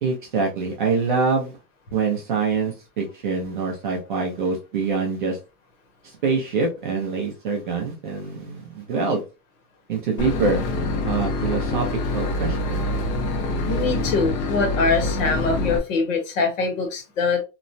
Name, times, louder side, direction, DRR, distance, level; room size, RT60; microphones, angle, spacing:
voice 1, 0.0-1.5 1.9-5.4 6.0-9.2 9.9-10.6 11.1-11.9 12.1-12.9, right 4 dB, 35° right, 0.4 m, -25 dB
Boat Water vehicle / Engine, 10.2-15.8, left 2 dB, 90° left, 0.9 m, -25 dB
voice 2, 13.7-17.4, left 4 dB, 55° left, 1.0 m, -23 dB
2.9 x 2.1 x 2.5 m
supercardioid pair, 175°, 47 cm